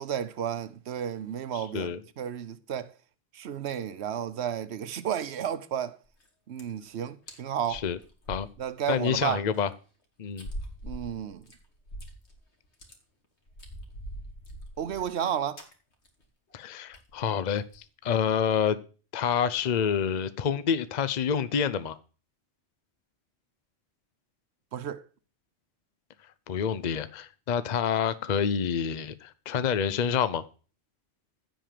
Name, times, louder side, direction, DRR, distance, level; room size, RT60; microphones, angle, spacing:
voice 1, 0.0-2.9 3.3-6.0 6.5-7.8 8.6-9.4 10.8-11.4 14.8-15.6 24.7-25.0, right 9 dB, 80° right, 1.1 m, -32 dB
voice 2, 1.5-2.0 7.7-8.0 8.3-8.5 8.9-9.7 10.2-10.5 16.5-18.8 19.1-22.0 26.5-30.4, left 7 dB, 45° left, 0.7 m, -28 dB
sound 1, 6.1-6.3 6.6-6.9 7.3-7.4 7.6-9.2 9.5-9.6 10.4-12.4 12.6-12.9 13.5-15.3 15.6-15.7 16.0-16.2 16.5-16.6 16.9-17.2 17.6-17.8, right 1 dB, 85° left, 2.3 m, -42 dB
15.0 x 5.1 x 7.6 m
omnidirectional pair, 1.1 m